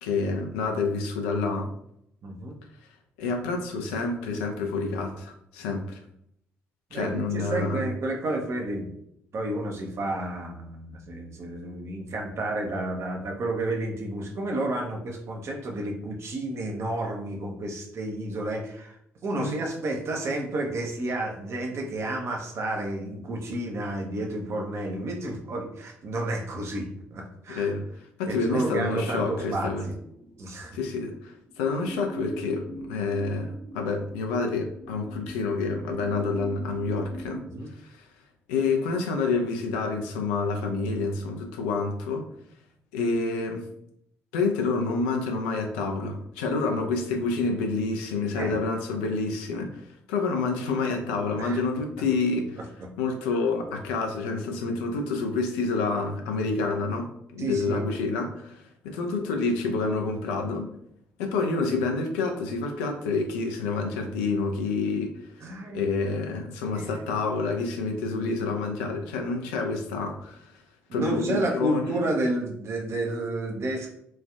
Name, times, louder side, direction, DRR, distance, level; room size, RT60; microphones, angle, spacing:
voice 1, 0.0-1.7 3.2-6.0 6.9-7.9 19.4-19.5 27.5-27.8 28.2-29.9 30.7-37.4 37.7-38.1 38.5-42.3 42.9-43.7 44.3-52.6 53.0-60.7 61.2-65.3 65.7-70.6 70.9-72.0, left 3 dB, 70° left, 3 dB, 0.4 m, -28 dB
voice 2, 2.2-2.6 6.9-8.9 9.3-19.0 19.2-27.7 28.3-29.9 30.4-30.8 37.5-37.7 48.3-48.6 51.4-51.6 57.4-57.8 65.4-65.9 66.7-67.2 70.9-73.9, right 1 dB, 45° right, 2 dB, 0.6 m, -31 dB
sound 1, 30.2-37.4, equal, 60° right, 1.2 m, -43 dB
3.1 x 2.3 x 2.3 m, 0.74 s
figure-of-eight pair, 40°, 6 cm